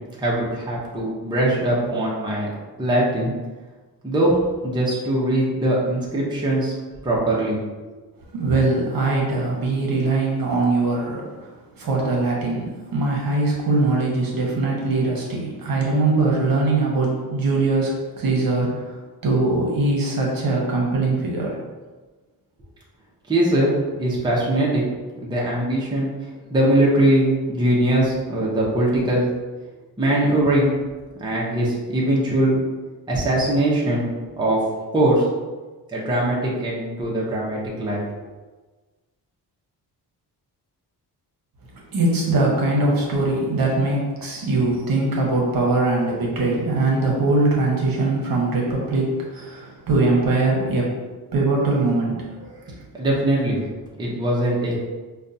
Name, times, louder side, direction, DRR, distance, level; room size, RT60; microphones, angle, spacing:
voice 1, 0.2-2.5 2.8-3.3 4.0-4.3 4.6-6.7 7.0-7.6 23.3-24.9 25.2-26.1 26.5-29.3 30.0-30.7 31.2-32.6 33.1-34.1 34.3-34.6 34.9-35.2 35.9-38.0 52.9-53.6 54.0-54.8, right 1 dB, 10° right, -5 dB, 0.6 m, -21 dB
voice 2, 8.3-21.6 41.9-51.0 51.3-52.8, right 2 dB, 55° right, -2 dB, 0.9 m, -22 dB
5.2 x 2.2 x 2.6 m, 1.3 s
wide cardioid pair, 160°, 40 cm